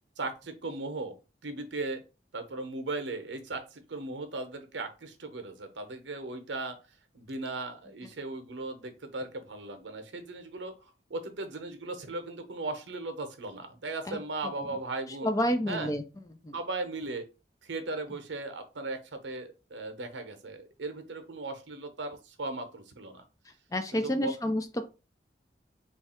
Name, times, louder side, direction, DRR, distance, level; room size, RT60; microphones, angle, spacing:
voice 1, 0.2-1.2 1.4-2.0 2.3-6.8 7.1-15.3 15.7-15.9 16.5-17.2 17.6-23.2 23.9-24.3, right 2 dB, 90° right, 8 dB, 0.8 m, -37 dB
voice 2, 15.2-16.0 16.4-16.6 23.7-24.8, equal, 20° left, 8 dB, 0.4 m, -29 dB
3.1 x 2.4 x 4.3 m, 0.31 s
head